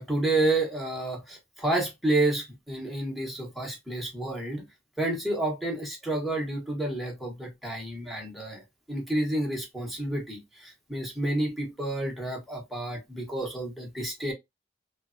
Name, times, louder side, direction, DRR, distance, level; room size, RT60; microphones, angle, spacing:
voice 1, 0.0-4.6 5.0-8.6 8.9-14.3, right 2 dB, ahead, 0.9 m, -30 dB
3.1 x 2.1 x 2.5 m
head